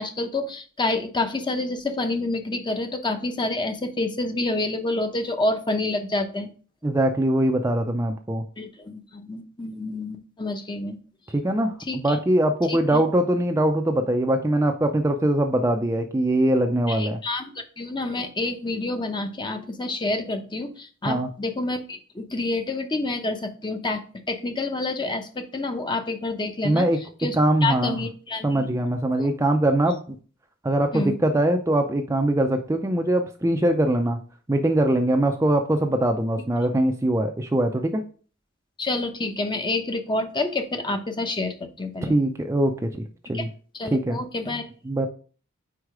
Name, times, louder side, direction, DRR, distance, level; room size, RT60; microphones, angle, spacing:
voice 1, 0.0-6.5 8.6-11.0 11.8-12.2 12.7-13.0 16.9-26.9 27.2-28.8 29.2-29.3 30.9-31.2 38.8-42.2 43.3-43.4 43.7-44.7, left 2 dB, 20° left, 6 dB, 0.7 m, -28 dB
voice 2, 6.8-8.4 11.3-17.2 21.1-21.3 26.6-27.0 27.3-28.0 28.4-30.2 30.6-34.2 34.5-38.0 42.0-42.9 43.3-43.5 43.9-44.2 44.9-45.1, right 1 dB, 15° right, 4 dB, 0.5 m, -22 dB
4.8 x 4.5 x 4.8 m, 0.39 s
head